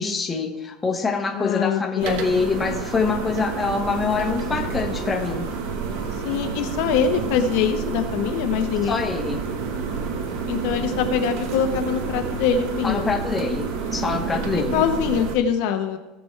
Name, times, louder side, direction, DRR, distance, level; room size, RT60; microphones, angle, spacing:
voice 1, 0.0-5.5 8.9-9.4 12.8-14.8, left 4 dB, 15° left, 2 dB, 1.1 m, -25 dB
voice 2, 1.3-2.4 6.2-9.0 10.5-13.1 14.5-16.0, left 7 dB, 65° left, 5 dB, 1.0 m, -23 dB
sound 1, 2.0-15.4, right 5 dB, 75° right, 1.2 m, -29 dB
17.5 x 6.0 x 3.3 m, 1.1 s
cardioid pair, 160°, 0 cm